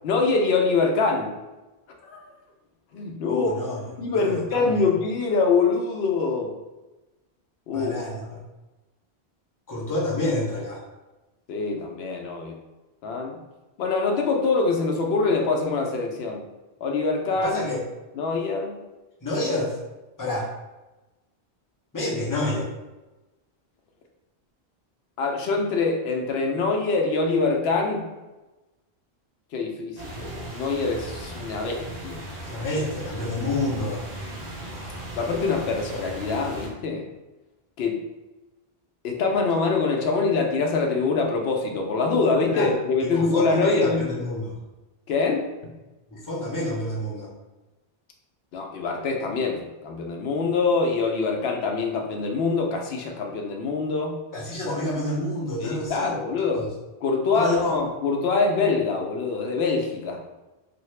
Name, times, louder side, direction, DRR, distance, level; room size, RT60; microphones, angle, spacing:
voice 1, 0.0-1.3 2.0-2.2 2.9-3.6 4.0-6.5 7.7-7.9 11.5-12.6 13.0-13.4 13.8-16.4 16.8-17.6 18.2-18.8 25.2-28.1 29.5-32.2 35.2-37.1 37.8-38.0 39.0-44.0 45.1-45.5 48.5-54.2 54.6-54.7 55.6-56.7 57.0-60.2, left 4 dB, 75° left, 2 dB, 0.8 m, -24 dB
voice 2, 3.3-4.8 7.7-8.4 9.7-10.8 17.4-17.8 19.2-19.8 20.2-20.5 21.9-22.7 32.5-34.0 42.5-42.7 43.0-44.6 46.1-47.3 54.3-56.1 56.5-56.7 57.3-57.7, left 1 dB, 20° left, -5 dB, 0.6 m, -29 dB
sound 1, 30.0-36.7, right 1 dB, 45° right, 0.7 m, -37 dB
2.7 x 2.4 x 3.1 m, 1.1 s
omnidirectional pair, 1.1 m